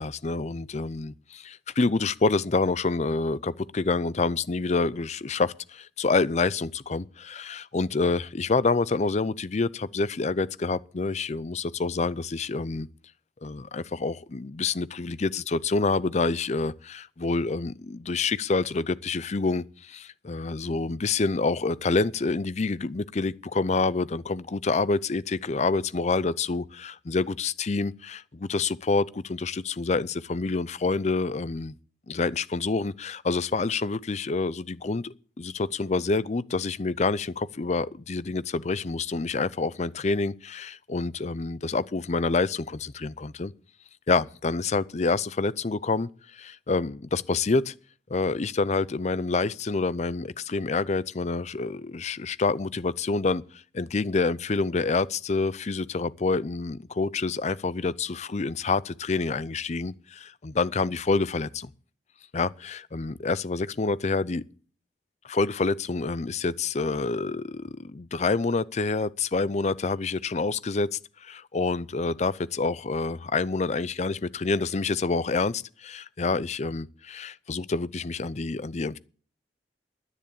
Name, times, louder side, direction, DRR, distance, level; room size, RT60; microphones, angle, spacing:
voice 1, 0.0-12.9 13.4-31.8 32.1-43.5 44.1-47.7 48.1-61.7 62.3-64.4 65.2-79.0, left 3 dB, 40° left, 0.5 m, -27 dB
10.5 x 9.5 x 8.4 m
head